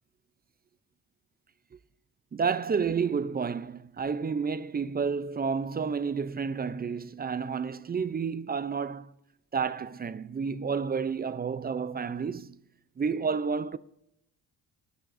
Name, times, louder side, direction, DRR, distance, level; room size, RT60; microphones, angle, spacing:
voice 1, 2.3-9.1 9.5-12.6 13.0-13.8, right 5 dB, 20° right, 0.4 m, -30 dB
21.0 x 11.0 x 2.6 m
cardioid pair, 110°, 43 cm